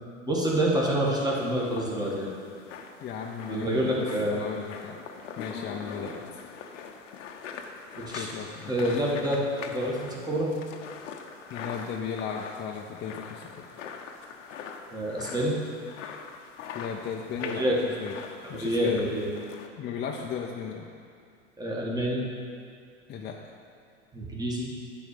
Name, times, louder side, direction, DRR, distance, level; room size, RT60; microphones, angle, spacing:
voice 1, 0.3-2.3 3.5-4.4 6.0-6.1 7.9-8.3 8.7-10.5 14.9-15.6 17.4-17.7 18.6-19.3 21.6-22.2 24.1-24.7, right 1 dB, 10° right, -4 dB, 1.7 m, -27 dB
sound 1, 1.4-19.7, left 6 dB, 75° left, 0.9 m, -43 dB
voice 2, 3.0-5.0 5.4-6.2 8.1-8.7 11.5-13.7 16.7-18.2 18.5-19.1 19.8-20.9 23.1-23.4, left 7 dB, 30° left, 0 dB, 0.6 m, -35 dB
9.2 x 4.3 x 6.7 m, 2.3 s
hypercardioid pair, 95°, 38 cm